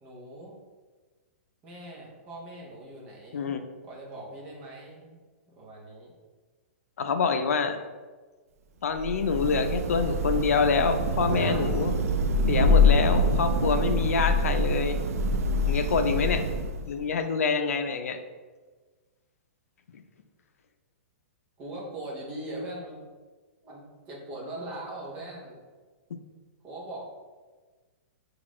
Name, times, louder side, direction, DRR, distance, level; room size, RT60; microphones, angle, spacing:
voice 1, 0.0-0.6 1.6-3.6 3.8-5.2 5.5-6.1 11.3-11.7 21.6-23.1 23.6-25.6 26.6-27.1, right 1 dB, 15° right, -4 dB, 0.7 m, -41 dB
voice 2, 7.0-7.8 8.8-11.9 12.5-15.0 15.6-16.4 16.8-18.2 19.9-20.0, left 5 dB, 85° left, 8 dB, 0.5 m, -26 dB
Thunder / Rain, 9.0-17.0, left 1 dB, 90° right, 0.4 m, -25 dB
5.9 x 2.4 x 3.0 m, 1.3 s
hypercardioid pair, 175°, 8 cm